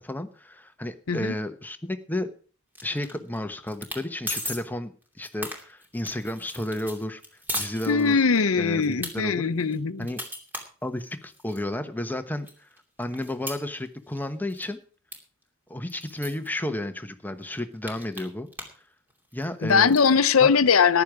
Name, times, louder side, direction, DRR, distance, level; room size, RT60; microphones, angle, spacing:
voice 1, 0.0-2.3 2.8-4.9 5.2-7.2 7.5-8.2 8.6-9.5 10.0-10.2 10.8-12.7 13.0-14.8 15.7-18.5 19.3-19.9 20.4-20.5, left 1 dB, 10° left, 1.0 m, -32 dB
sound 1, 2.8-3.4 3.7-4.0 4.3-4.6 5.0-8.4 8.8-9.1 9.6-11.6 12.1-12.2 12.5-14.2 14.5-14.7 15.1-15.2 15.4-15.5 15.9-16.5 17.1-17.2 17.4-18.8 19.1-20.1, left 1 dB, 10° right, 2.7 m, -37 dB
voice 2, 7.9-10.1 19.6-21.0, left 5 dB, 90° left, 0.7 m, -21 dB
14.0 x 11.0 x 4.9 m
head